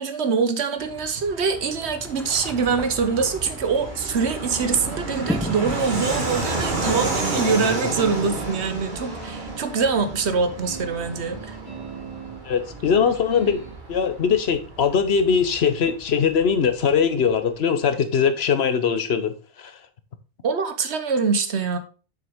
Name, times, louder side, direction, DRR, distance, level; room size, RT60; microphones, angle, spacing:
voice 1, 0.0-11.6 20.4-21.8, right 5 dB, 75° right, 1.2 m, -24 dB
Fixed-wing aircraft airplane, 0.8-17.0, right 2 dB, 45° right, 1.6 m, -32 dB
sound 1, 1.9-7.1, equal, 5° left, 0.4 m, -36 dB
sound 2, 5.4-13.8, right 3 dB, 30° right, 2.3 m, -41 dB
voice 2, 12.5-13.6 13.9-19.7, left 6 dB, 70° left, 1.1 m, -21 dB
7.1 x 6.3 x 3.5 m
omnidirectional pair, 1.1 m